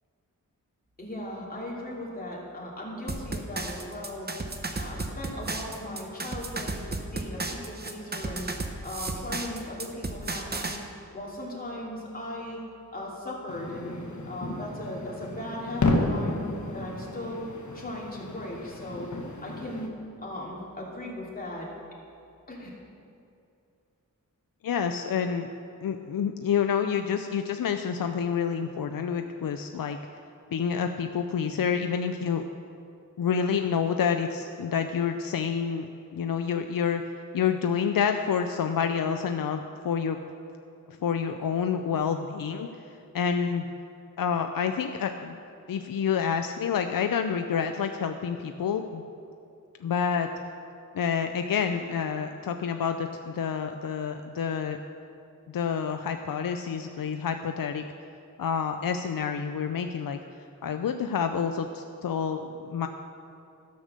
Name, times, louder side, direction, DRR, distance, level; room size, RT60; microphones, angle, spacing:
voice 1, 1.0-4.3 4.8-6.8 7.1-8.4 8.8-10.8 11.1-12.6 12.9-13.9 14.3-16.4 16.7-17.5 17.7-19.1 19.4-19.9 20.2-21.7 22.5-22.7, left 1 dB, 25° left, -4 dB, 2.8 m, -37 dB
sound 1, 3.1-10.8, right 2 dB, 30° right, 0.9 m, -34 dB
sound 2, 13.5-19.9, left 2 dB, 55° left, 1.3 m, -32 dB
voice 2, 24.6-25.5 25.8-30.0 30.5-32.4 33.2-37.0 37.3-40.2 40.9-42.7 43.1-43.6 44.2-45.4 45.7-49.0 49.8-50.3 50.9-54.8 55.5-57.8 58.4-60.2 60.6-62.9, left 7 dB, 80° left, 6 dB, 0.5 m, -28 dB
12.5 x 6.6 x 6.5 m, 2.6 s
wide cardioid pair, 70°, 34 cm